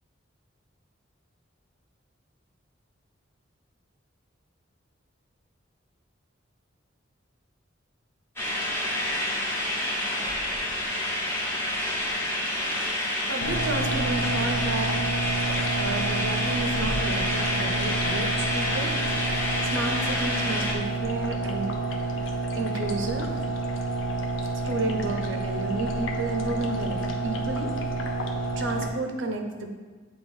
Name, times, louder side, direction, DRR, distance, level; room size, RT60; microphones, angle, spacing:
sound 1, 8.4-20.7, left 1 dB, 10° left, 1.0 m, -28 dB
voice 1, 13.3-15.2 15.7-18.9 19.7-21.7 22.5-23.3 24.5-27.7 28.1-28.2 28.6-29.7, right 2 dB, 75° right, 5 dB, 0.7 m, -31 dB
sound 2, 13.4-28.9, right 2 dB, 85° left, 0.7 m, -29 dB
8.7 x 3.5 x 3.6 m, 1.3 s
head